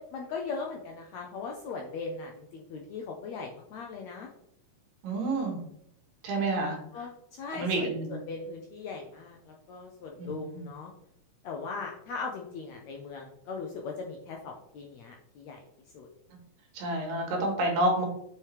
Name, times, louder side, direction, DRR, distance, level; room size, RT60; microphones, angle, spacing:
voice 1, 0.0-4.3 6.9-7.1 7.4-10.9 11.4-15.6 15.9-16.1, left 4 dB, 80° left, 1 dB, 1.6 m, -39 dB
voice 2, 5.0-5.6 6.2-6.8 7.5-8.2 10.2-10.4 16.8-18.1, right 2 dB, 75° right, 1 dB, 3.1 m, -28 dB
7.3 x 4.9 x 3.3 m, 0.75 s
omnidirectional pair, 3.9 m